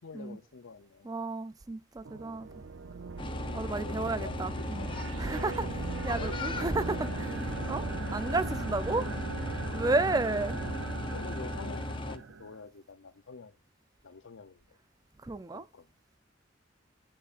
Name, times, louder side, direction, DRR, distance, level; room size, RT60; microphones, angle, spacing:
voice 1, 0.0-1.1 3.5-4.9 6.2-6.8 8.9-9.1 11.1-13.6 14.0-14.8 15.5-15.9, left 4 dB, 75° left, 0.6 m, -47 dB
voice 2, 1.0-2.6 3.5-4.9 5.2-9.0 9.7-10.6 15.2-15.7, right 2 dB, 20° right, 0.4 m, -32 dB
sound 1, 2.0-12.6, right 4 dB, 75° right, 0.6 m, -39 dB
sound 2, 3.2-12.2, left 2 dB, 25° left, 0.7 m, -37 dB
9.3 x 7.0 x 2.5 m
head